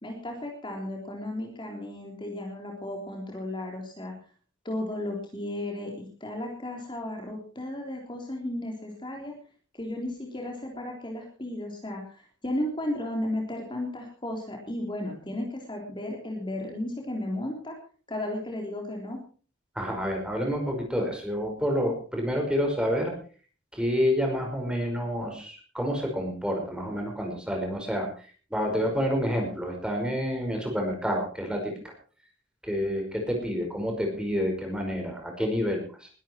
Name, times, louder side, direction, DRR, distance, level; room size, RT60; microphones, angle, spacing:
voice 1, 0.0-4.1 4.6-9.3 9.7-17.8 18.1-19.2, left 1 dB, 25° left, 1 dB, 3.7 m, -34 dB
voice 2, 19.8-23.1 23.7-31.9 32.6-36.1, equal, 5° right, 2 dB, 5.2 m, -29 dB
21.0 x 12.5 x 4.7 m, 0.40 s
head